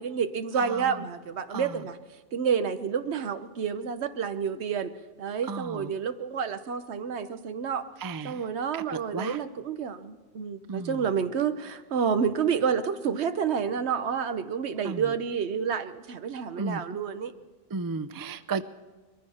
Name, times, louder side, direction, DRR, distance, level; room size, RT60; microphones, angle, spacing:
voice 1, 0.0-2.0 2.3-4.9 5.2-7.9 8.2-17.3, right 7 dB, 80° right, 11 dB, 1.1 m, -29 dB
voice 2, 0.6-1.0 1.5-1.8 5.4-5.9 8.0-8.5 8.7-9.4 10.7-11.1 14.8-15.1 16.6-16.8 17.7-18.6, right 4 dB, 35° right, 13 dB, 0.3 m, -34 dB
22.5 x 14.5 x 4.3 m, 1.3 s
omnidirectional pair, 1.1 m